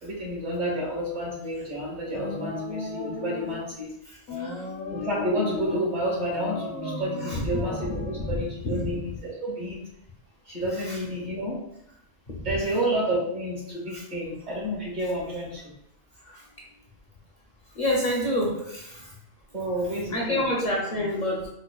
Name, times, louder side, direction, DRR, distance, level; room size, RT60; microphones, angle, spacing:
voice 1, 0.0-4.2 4.9-9.8 10.5-11.6 12.4-15.7 19.5-20.4, right 1 dB, 45° right, -4 dB, 1.1 m, -30 dB
sound 1, 2.1-3.7 4.3-5.9 6.3-8.3, left 3 dB, 75° left, 0.9 m, -34 dB
voice 2, 17.8-18.9 20.1-21.5, left 1 dB, 50° left, -2 dB, 0.6 m, -26 dB
4.2 x 2.2 x 2.2 m, 0.77 s
omnidirectional pair, 1.1 m